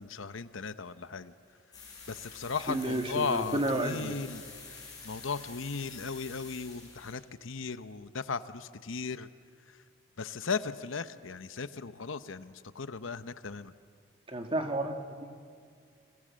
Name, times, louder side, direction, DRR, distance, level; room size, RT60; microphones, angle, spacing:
voice 1, 0.0-1.3 2.1-4.4 5.0-9.3 10.2-13.7, left 5 dB, 75° left, 13 dB, 0.8 m, -36 dB
sound 1, 1.7-7.1, left 4 dB, 20° left, 5.8 m, -48 dB
voice 2, 2.7-4.1 14.3-15.3, right 1 dB, 25° right, 4 dB, 2.0 m, -31 dB
30.0 x 22.0 x 7.6 m, 2.2 s
head